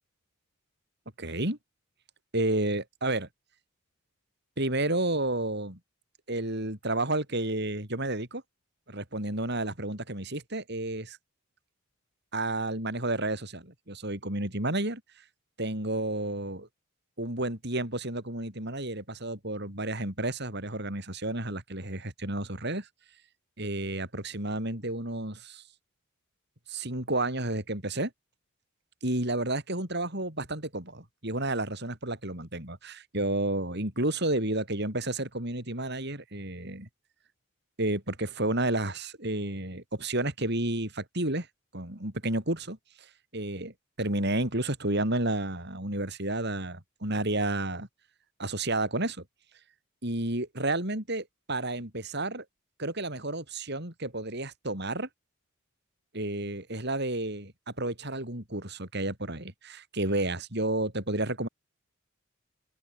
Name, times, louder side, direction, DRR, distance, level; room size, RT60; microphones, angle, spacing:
voice 1, 1.2-1.6 2.3-3.3 4.6-5.8 6.3-8.4 8.9-11.2 12.3-15.0 15.6-16.7 17.2-22.9 23.6-25.6 26.7-28.1 29.0-36.9 37.8-41.5 41.7-43.1 43.3-47.9 48.4-49.2 50.0-52.4 52.8-55.1 56.1-61.5, right 2 dB, 50° right, 5.9 m, -31 dB
open air
head